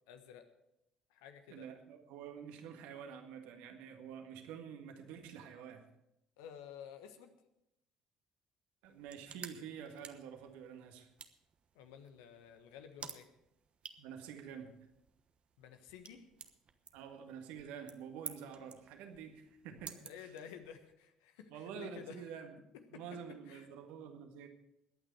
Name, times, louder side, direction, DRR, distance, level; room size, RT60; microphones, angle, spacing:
voice 1, 0.1-0.5 1.1-1.7 6.4-7.3 11.7-13.3 15.6-16.3 20.0-22.3 22.7-23.0 23.5-23.7, left 8 dB, 70° left, 8 dB, 1.3 m, -52 dB
voice 2, 1.5-5.9 8.8-11.1 14.0-14.8 16.9-20.3 21.5-22.6 22.9-24.5, right 7 dB, 70° right, 5 dB, 1.7 m, -48 dB
sound 1, 8.8-20.9, right 7 dB, 45° right, 1.1 m, -54 dB
21.0 x 9.0 x 4.7 m, 0.83 s
figure-of-eight pair, 50°, 3 cm